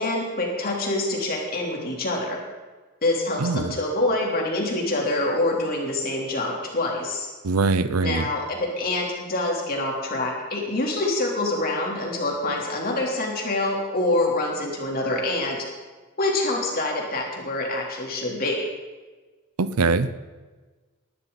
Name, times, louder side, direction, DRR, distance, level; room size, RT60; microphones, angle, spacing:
voice 1, 0.0-2.4 3.0-7.3 8.0-15.6 16.2-18.6, left 2 dB, 45° left, -1 dB, 3.5 m, -26 dB
voice 2, 3.4-3.8 7.4-8.3 19.6-20.1, right 3 dB, 90° right, 14 dB, 0.7 m, -22 dB
19.0 x 12.5 x 4.1 m, 1.3 s
head